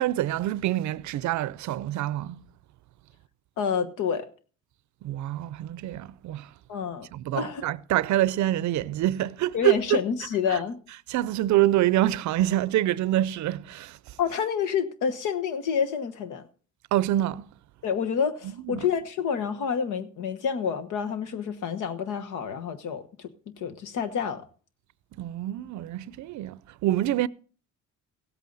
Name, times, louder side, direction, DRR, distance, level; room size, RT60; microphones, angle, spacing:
voice 1, 0.0-2.4 5.0-6.5 7.1-10.0 10.5-10.6 11.1-14.2 16.9-17.5 18.4-18.9 25.2-27.3, right 14 dB, 70° right, 0.5 m, -26 dB
voice 2, 3.6-4.2 6.7-7.1 7.3-7.6 9.5-10.8 14.2-16.4 17.8-23.3 23.6-24.4, left 7 dB, 85° left, 1.2 m, -28 dB
16.0 x 8.4 x 3.9 m
cardioid pair, 90°, 30 cm